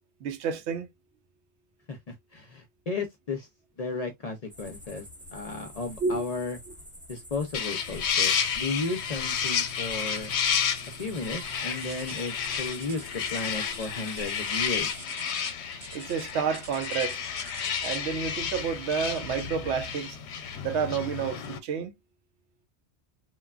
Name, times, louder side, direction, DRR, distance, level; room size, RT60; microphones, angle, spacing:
voice 1, 0.2-0.9 6.0-6.2 15.9-17.2 17.8-20.2 20.6-21.9, right 6 dB, 85° right, 0.9 m, -30 dB
voice 2, 1.9-3.5 3.8-6.6 7.1-10.3 11.0-14.9, left 3 dB, 50° left, 0.5 m, -34 dB
sound 1, 4.5-15.0, equal, 10° right, 0.8 m, -47 dB
sound 2, 7.5-21.6, left 7 dB, 90° left, 0.9 m, -31 dB
sound 3, 11.8-18.2 19.1-19.4 19.9-20.1 20.7-20.8, right 4 dB, 40° right, 0.5 m, -47 dB
3.1 x 2.2 x 2.3 m
omnidirectional pair, 1.1 m